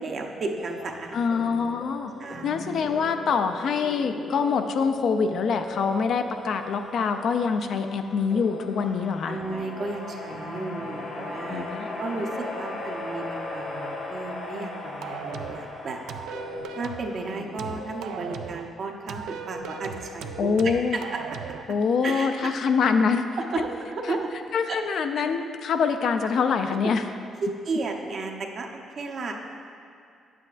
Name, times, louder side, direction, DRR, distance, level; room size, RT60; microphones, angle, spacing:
voice 1, 0.0-1.2 2.2-2.6 9.2-11.7 12.0-16.0 16.7-21.2 22.0-22.7 23.4-24.3 24.7-24.8 25.2-25.3 27.4-29.3, right 3 dB, 55° right, 2 dB, 0.8 m, -33 dB
sound 1, 0.6-18.4, left 2 dB, 20° left, 0.6 m, -41 dB
voice 2, 1.1-2.1 2.4-9.4 11.5-11.9 20.4-21.0 21.7-23.3 24.1-24.2 24.5-27.0, left 5 dB, 65° left, 7 dB, 0.4 m, -25 dB
sound 2, 8.0-17.5, left 2 dB, 85° left, 1.3 m, -38 dB
sound 3, 15.0-15.7 16.1-17.1 17.6-18.7 19.1-21.7, right 6 dB, 85° right, 0.3 m, -37 dB
8.9 x 7.5 x 2.5 m, 2.5 s
cardioid pair, 90°, 0 cm